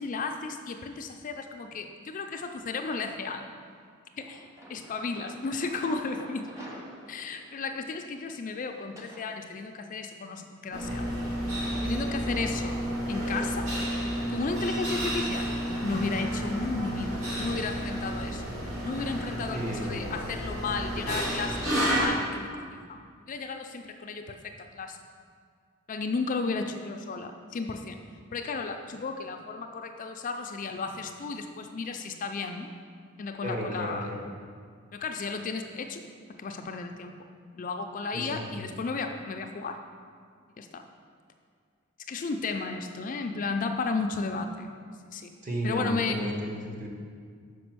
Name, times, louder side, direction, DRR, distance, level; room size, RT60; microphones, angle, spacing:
voice 1, 0.0-3.5 4.2-4.4 4.7-6.5 7.1-11.1 11.8-12.8 13.1-13.7 14.3-15.5 15.8-18.4 18.9-25.0 25.9-28.0 28.3-32.7 33.2-34.1 34.9-36.0 36.4-37.2 37.6-39.8 40.6-40.9 42.1-44.7 45.1-45.3 45.6-46.2, left 4 dB, 40° left, 5 dB, 0.4 m, -34 dB
sound 1, 2.9-3.5 4.2-9.3, equal, 15° right, 1.0 m, -49 dB
sound 2, 10.7-22.1, equal, 80° right, 2.0 m, -31 dB
voice 2, 19.5-20.0 33.4-34.2 38.1-38.6 45.4-46.9, equal, 40° right, -2 dB, 1.2 m, -33 dB
5.9 x 5.0 x 6.1 m, 2.1 s
head